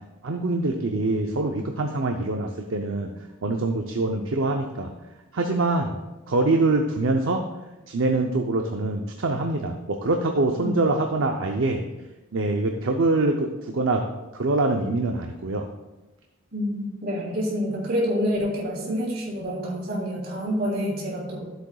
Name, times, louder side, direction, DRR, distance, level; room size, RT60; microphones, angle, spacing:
voice 1, 0.2-3.1 3.4-4.9 5.3-6.0 6.3-7.4 7.9-11.8 12.3-14.1 14.3-15.7, right 2 dB, 65° right, 3 dB, 0.6 m, -24 dB
voice 2, 16.5-21.4, equal, 50° right, -4 dB, 3.1 m, -27 dB
13.0 x 7.8 x 2.3 m, 1.1 s
head